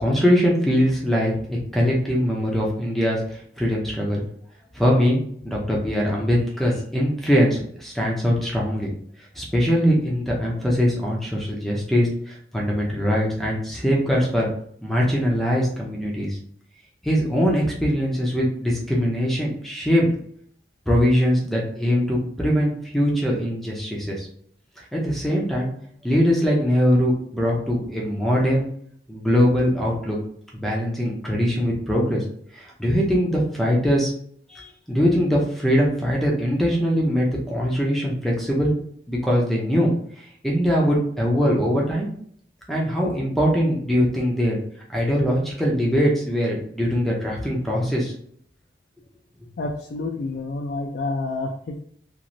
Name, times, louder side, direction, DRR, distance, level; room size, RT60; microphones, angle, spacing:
voice 1, 0.0-3.2 3.6-4.2 4.7-5.2 5.4-8.9 9.4-14.5 14.8-16.3 17.0-20.1 20.9-24.3 24.9-25.7 26.0-28.7 29.1-30.2 30.5-32.2 32.5-34.1 34.5-38.7 39.1-39.9 40.4-42.1 42.7-44.6 44.9-48.1, equal, ahead, -3 dB, 0.5 m, -22 dB
voice 2, 49.6-51.8, left 3 dB, 70° left, 2 dB, 0.3 m, -29 dB
3.0 x 2.5 x 2.6 m, 0.63 s
head